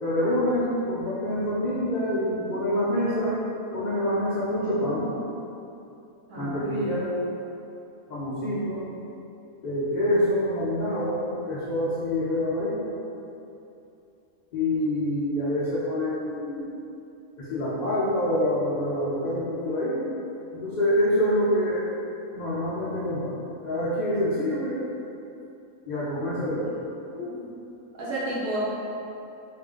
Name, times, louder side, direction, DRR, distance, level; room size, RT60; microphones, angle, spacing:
voice 1, 0.0-3.4 3.7-5.1 6.4-7.1 8.1-8.9 9.6-13.0 14.5-16.6 17.4-20.0 20.5-21.9 22.3-23.3 23.6-24.8 25.9-26.7, left 1 dB, 75° left, -10 dB, 0.4 m, -26 dB
voice 2, 6.3-6.6 27.1-27.3 28.0-28.6, right 1 dB, 80° right, -9 dB, 1.5 m, -31 dB
3.7 x 2.4 x 3.6 m, 2.8 s
omnidirectional pair, 1.5 m